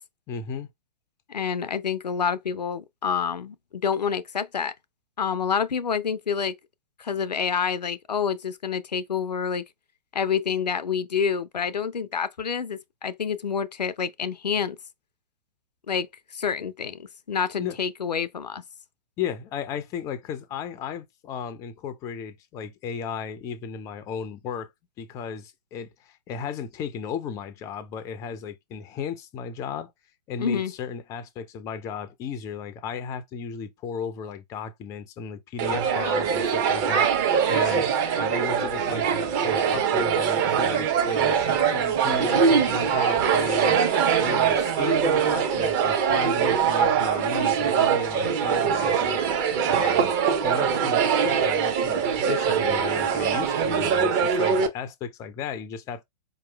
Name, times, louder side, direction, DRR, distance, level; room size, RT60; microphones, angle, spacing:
voice 1, 0.3-0.7 17.6-17.8 19.2-24.7 25.0-29.9 30.3-37.1 37.5-39.1 39.4-43.8 44.2-49.2 49.6-50.1 50.4-56.0, left 7 dB, 15° left, 0.4 m, -35 dB
voice 2, 1.3-4.7 5.2-6.6 7.0-9.6 10.1-14.8 15.9-18.6 30.4-30.7, left 6 dB, 75° left, 0.5 m, -28 dB
sound 1, 35.6-54.7, right 7 dB, 30° right, 0.8 m, -23 dB
4.6 x 2.8 x 2.3 m
figure-of-eight pair, 115°, 21 cm